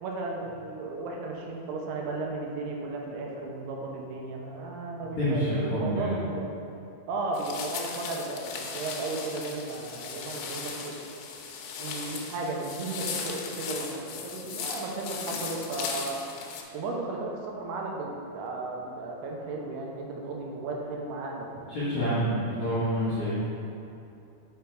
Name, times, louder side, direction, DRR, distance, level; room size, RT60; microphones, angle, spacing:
voice 1, 0.0-6.5 7.1-11.0 11.8-16.2 16.7-21.5, right 3 dB, 90° right, -1 dB, 2.7 m, -35 dB
voice 2, 5.0-6.1 21.7-23.4, equal, 55° left, -11 dB, 1.5 m, -28 dB
sound 1, 7.3-16.6, left 6 dB, 85° left, 2.1 m, -37 dB
5.7 x 5.2 x 4.6 m, 2.7 s
omnidirectional pair, 4.7 m